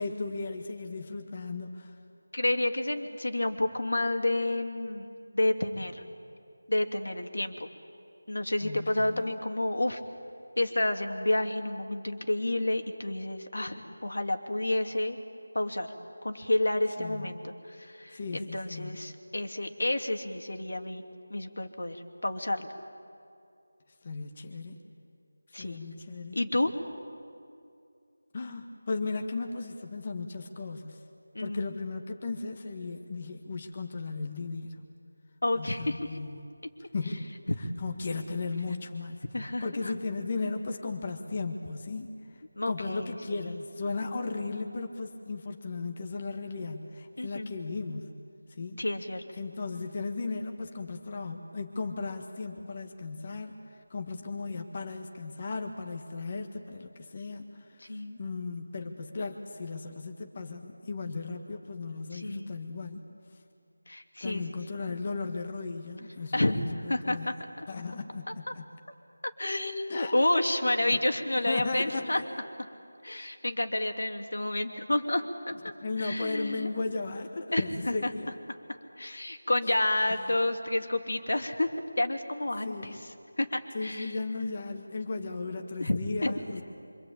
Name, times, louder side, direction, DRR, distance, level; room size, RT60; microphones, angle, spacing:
voice 1, 0.0-2.0 8.6-9.3 17.0-17.3 18.1-19.0 24.0-24.8 25.5-26.4 28.3-31.0 31.4-34.8 35.5-36.5 36.9-37.3 37.8-48.1 48.6-48.8 49.4-63.0 64.2-67.3 67.7-68.6 69.9-70.1 70.9-71.0 71.5-72.2 75.8-78.3 80.1-80.2 82.6-83.1 83.7-86.6, left 3 dB, 30° left, 4 dB, 1.6 m, -36 dB
voice 2, 2.3-6.0 6.7-7.7 8.3-10.0 10.6-15.2 15.5-15.9 16.2-21.0 21.3-22.7 25.5-25.8 26.3-26.7 31.3-31.6 35.4-36.2 39.3-39.9 42.5-43.5 47.2-47.5 48.8-49.2 57.8-58.2 62.1-62.5 63.9-64.6 66.3-66.6 66.9-67.7 69.4-72.2 73.0-75.7 76.0-76.7 77.5-78.1 79.0-81.7 82.0-83.0 83.4-84.2 85.8-86.4, left 1 dB, 75° left, 6 dB, 2.7 m, -30 dB
25.5 x 25.5 x 8.8 m, 2.4 s
figure-of-eight pair, 170°, 0 cm